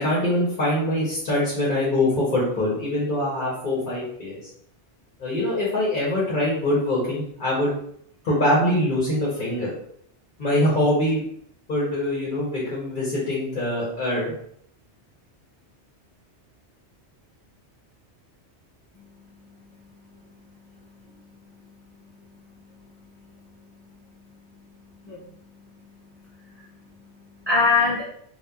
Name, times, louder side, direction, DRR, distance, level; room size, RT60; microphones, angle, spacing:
voice 1, 0.0-4.4 5.2-7.7 8.2-9.7 10.4-11.2 11.7-14.3, left 1 dB, 50° left, -6 dB, 0.8 m, -23 dB
voice 2, 18.9-28.0, left 4 dB, 20° right, -10 dB, 1.1 m, -31 dB
2.8 x 2.1 x 2.2 m, 0.66 s
omnidirectional pair, 1.1 m